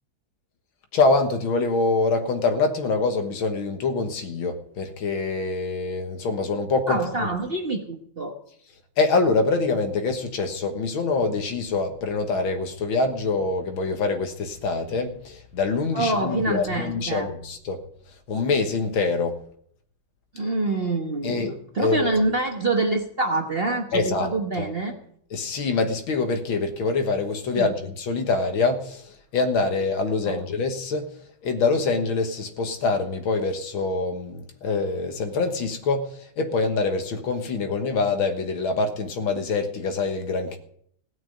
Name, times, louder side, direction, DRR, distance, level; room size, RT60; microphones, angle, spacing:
voice 1, 0.9-7.3 9.0-17.8 18.3-19.4 21.2-22.1 23.9-24.3 24.6-24.7 25.3-31.1 31.4-36.1 36.4-40.6, left 3 dB, 75° left, 6 dB, 2.1 m, -25 dB
voice 2, 6.9-8.3 15.9-17.3 20.3-24.9 27.5-27.7 30.3-30.4, right 2 dB, 35° right, 3 dB, 1.1 m, -26 dB
16.5 x 6.1 x 9.0 m, 0.66 s
omnidirectional pair, 2.3 m